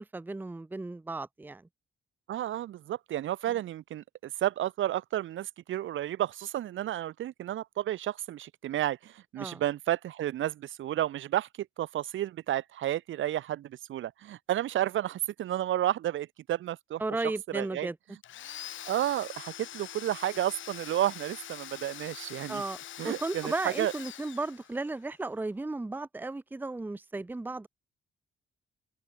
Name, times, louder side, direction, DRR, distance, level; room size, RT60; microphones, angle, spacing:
voice 1, 0.0-1.6 9.4-9.6 17.0-18.0 22.5-27.7, right 2 dB, 10° right, 0.9 m, -35 dB
voice 2, 2.3-17.0 17.5-17.9 18.8-22.6 23.0-23.9, right 12 dB, 80° right, 2.0 m, -32 dB
Domestic sounds home sounds, 18.2-25.0, left 12 dB, 75° left, 1.9 m, -44 dB
open air
cardioid pair, 160°, 20 cm